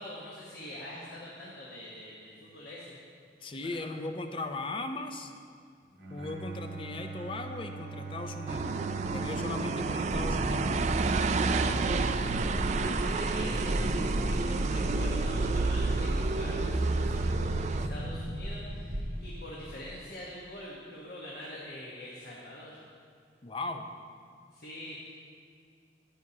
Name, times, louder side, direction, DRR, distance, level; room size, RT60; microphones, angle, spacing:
voice 1, 0.0-3.0 3.8-3.9 9.3-9.5 11.3-22.8 24.5-25.2, left 1 dB, 60° left, -6 dB, 1.2 m, -45 dB
voice 2, 3.4-5.3 6.1-8.8 9.1-10.8 23.4-23.9, left 2 dB, 30° left, 6 dB, 0.5 m, -38 dB
Bowed string instrument, 5.9-11.2, right 4 dB, 60° right, 1.1 m, -42 dB
sound 1, 8.5-17.9, right 3 dB, 40° right, 0.3 m, -30 dB
sound 2, 10.1-19.5, equal, 80° right, 1.3 m, -34 dB
11.0 x 9.2 x 2.8 m, 2.2 s
head